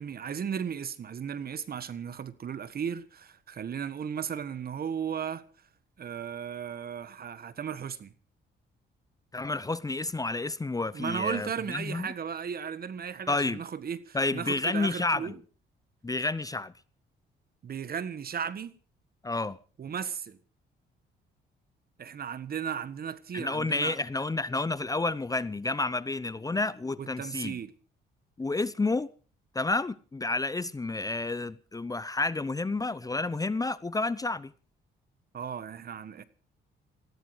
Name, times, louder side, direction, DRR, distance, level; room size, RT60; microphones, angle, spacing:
voice 1, 0.0-5.4 6.0-8.1 10.9-15.4 17.6-18.7 19.8-20.4 22.0-23.9 27.0-27.7 35.3-36.2, right 7 dB, 50° right, 1.5 m, -35 dB
voice 2, 9.3-12.1 13.3-13.6 14.1-15.3 16.0-16.7 19.2-19.6 23.3-27.6 28.4-29.1 29.5-34.5, left 3 dB, 20° left, 0.7 m, -30 dB
19.5 x 15.5 x 4.9 m
cardioid pair, 90°, 20 cm